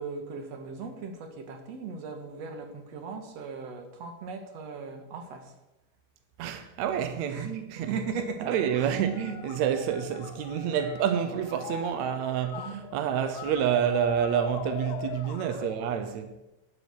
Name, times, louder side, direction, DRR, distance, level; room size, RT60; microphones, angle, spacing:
voice 1, 0.0-5.5 7.3-7.5 7.8-8.5 8.8-9.0 15.4-15.7, right 5 dB, 55° right, 2.4 m, -38 dB
voice 2, 6.4-8.0 8.4-16.3, right 9 dB, 80° right, 1.6 m, -28 dB
sound 1, 8.4-15.8, left 9 dB, 75° left, 2.2 m, -41 dB
11.0 x 10.5 x 6.4 m
omnidirectional pair, 4.2 m